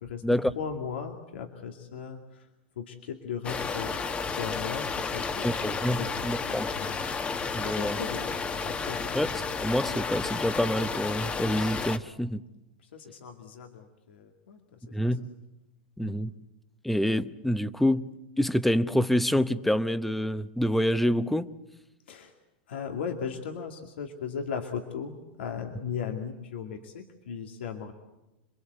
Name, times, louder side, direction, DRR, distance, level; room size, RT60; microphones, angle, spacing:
voice 1, 0.0-2.5 2.8-3.9 4.4-5.6 5.9-6.1 6.8-7.0 7.6-8.3 8.6-9.2 12.8-15.1 16.0-16.2 22.1-22.3 22.7-27.9, left 7 dB, 90° left, 3 dB, 2.4 m, -37 dB
sound 1, 3.4-12.0, left 5 dB, 20° left, 1.2 m, -32 dB
voice 2, 5.4-6.7 7.5-8.0 9.1-9.3 9.6-12.4 14.9-15.2 16.0-16.3 16.8-18.1 18.4-21.5, equal, 5° left, 13 dB, 0.9 m, -27 dB
28.0 x 22.0 x 8.2 m, 0.96 s
supercardioid pair, 135°, 6 cm